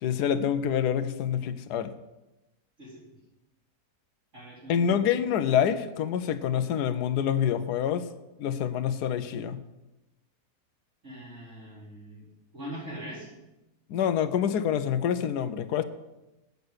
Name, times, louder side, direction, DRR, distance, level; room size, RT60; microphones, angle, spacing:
voice 1, 0.0-1.9 4.7-8.0 8.4-9.6 13.9-15.8, left 8 dB, 75° left, 12 dB, 1.2 m, -26 dB
voice 2, 4.3-5.0 11.0-12.3 12.5-13.3, equal, 45° right, -8 dB, 4.6 m, -41 dB
8.2 x 6.7 x 7.9 m, 1.0 s
omnidirectional pair, 1.8 m